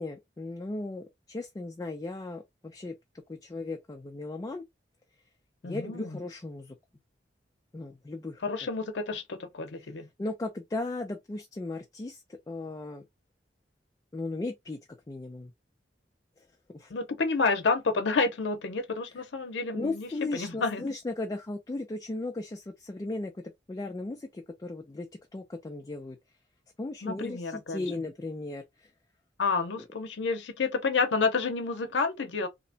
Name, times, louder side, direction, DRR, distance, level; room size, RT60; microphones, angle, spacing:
voice 1, 0.0-2.9 3.3-4.6 5.6-6.8 7.7-8.4 9.8-9.9 10.2-13.1 14.1-14.8 15.1-15.5 16.7-16.9 19.7-23.4 23.7-26.2 26.8-28.9 29.8-29.9, left 2 dB, 20° left, 0.3 m, -36 dB
voice 2, 5.6-6.2 8.4-10.1 16.9-20.8 27.0-27.8 29.4-32.5, left 4 dB, 75° left, 0.6 m, -29 dB
2.8 x 2.1 x 2.7 m
head